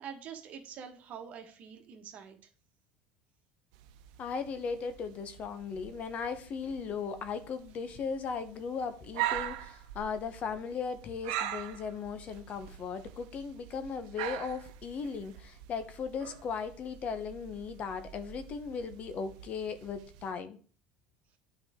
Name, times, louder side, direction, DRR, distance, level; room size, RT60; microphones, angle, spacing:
voice 1, 0.0-2.5, right 7 dB, 45° right, 1.5 m, -45 dB
sound 1, 3.7-20.3, right 12 dB, 80° right, 0.8 m, -43 dB
voice 2, 4.2-20.6, left 5 dB, 40° left, 0.9 m, -37 dB
9.4 x 4.8 x 3.7 m
supercardioid pair, 125°, 4 cm